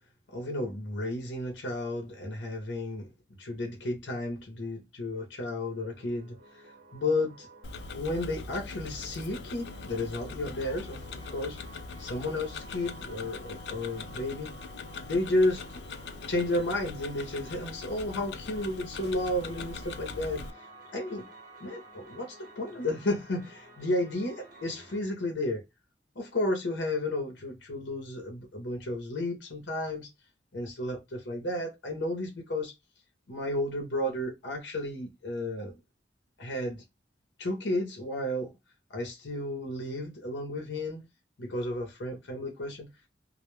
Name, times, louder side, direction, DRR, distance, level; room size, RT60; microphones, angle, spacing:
voice 1, 0.3-3.1 3.4-6.4 6.9-7.5 7.9-11.6 12.0-14.5 14.9-15.8 16.3-20.4 20.9-21.3 21.6-25.6 26.2-30.1 30.5-32.7 33.3-35.8 36.4-36.8 37.4-38.5 38.9-41.0 41.4-42.9, left 1 dB, 90° left, 0.7 m, -32 dB
sound 1, 5.6-25.0, right 1 dB, 50° right, 0.8 m, -52 dB
Tick-tock, 7.6-20.5, left 4 dB, 70° left, 0.3 m, -42 dB
2.2 x 2.1 x 2.9 m
head